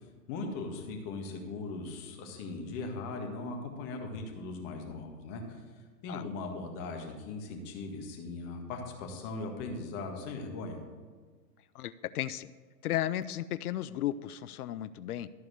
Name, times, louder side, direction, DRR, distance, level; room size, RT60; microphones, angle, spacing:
voice 1, 0.3-5.6 6.0-10.8, left 3 dB, 40° left, 2 dB, 1.9 m, -39 dB
voice 2, 11.7-12.5 12.8-15.3, left 12 dB, 65° left, 15 dB, 0.5 m, -34 dB
13.0 x 4.7 x 6.4 m, 1.5 s
hypercardioid pair, 120°, 50 cm